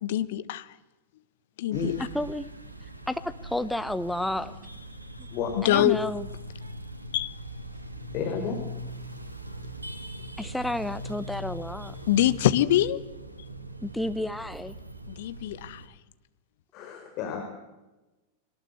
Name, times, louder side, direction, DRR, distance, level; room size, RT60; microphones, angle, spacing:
voice 1, 0.0-0.7 1.6-1.9 5.6-6.0 7.1-7.3 12.1-13.0 15.1-15.9, left 13 dB, 55° left, 14 dB, 1.2 m, -24 dB
sound 1, 1.7-15.9, right 1 dB, 85° right, 2.3 m, -41 dB
voice 2, 2.1-2.5 3.1-4.5 5.6-6.3 10.4-11.9 13.8-14.8, left 1 dB, 5° left, 12 dB, 1.1 m, -31 dB
voice 3, 8.1-8.6 16.7-17.4, left 6 dB, 40° left, 3 dB, 4.7 m, -31 dB
22.5 x 19.0 x 8.0 m, 1.0 s
figure-of-eight pair, 90°, 0 cm